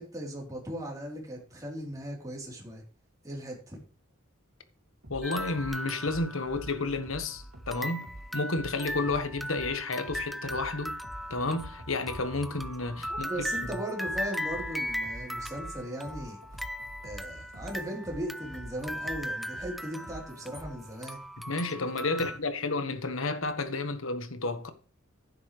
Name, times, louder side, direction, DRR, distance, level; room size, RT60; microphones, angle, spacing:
voice 1, 0.0-2.8 3.2-3.8 13.1-16.4 17.0-21.2, right 1 dB, 15° right, 3.8 m, -38 dB
sound 1, 5.0-21.0, right 1 dB, 90° right, 3.4 m, -47 dB
voice 2, 5.1-11.0 11.3-13.3 13.6-13.7 21.5-24.7, left 3 dB, 75° left, 1.5 m, -31 dB
sound 2, 5.2-7.2 7.7-22.4, equal, ahead, 0.5 m, -38 dB
11.5 x 10.0 x 3.3 m
head